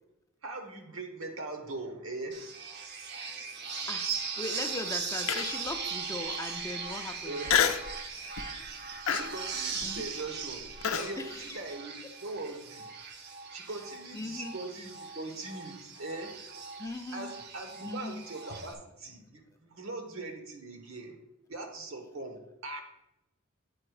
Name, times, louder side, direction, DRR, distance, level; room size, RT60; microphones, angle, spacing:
voice 1, 0.4-2.5 7.2-7.5 9.1-10.7 10.9-11.9 12.2-12.9 13.5-16.4 17.1-21.2 21.5-22.8, right 2 dB, 70° right, 5 dB, 1.3 m, -41 dB
sound 1, 2.3-18.7, right 5 dB, 50° right, 0.8 m, -39 dB
voice 2, 3.6-7.5 9.8-10.1 11.2-11.6 14.1-14.6 16.8-17.3 17.8-18.2, left 2 dB, 15° left, 5 dB, 0.5 m, -39 dB
Human voice, 5.3-5.7 6.3-6.4 7.5-7.9 8.4-8.6 9.1-11.1, left 8 dB, 75° left, 0.5 m, -28 dB
8.6 x 4.3 x 4.8 m, 0.89 s
head